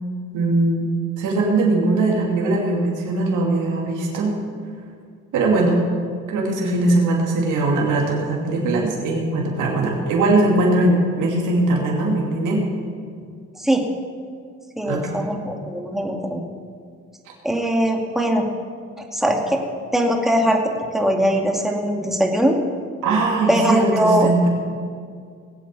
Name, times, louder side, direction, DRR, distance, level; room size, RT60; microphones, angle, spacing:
voice 1, 0.3-0.9 1.2-4.4 5.3-5.8 6.3-12.6 14.8-15.2 23.0-24.5, right 2 dB, 85° right, -2 dB, 2.7 m, -20 dB
voice 2, 14.8-16.4 17.4-18.5 19.1-19.6 19.9-20.6 20.9-22.6 23.5-24.3, right 1 dB, ahead, 0 dB, 2.2 m, -20 dB
19.5 x 8.3 x 6.9 m, 2.1 s
cardioid pair, 90°, 30 cm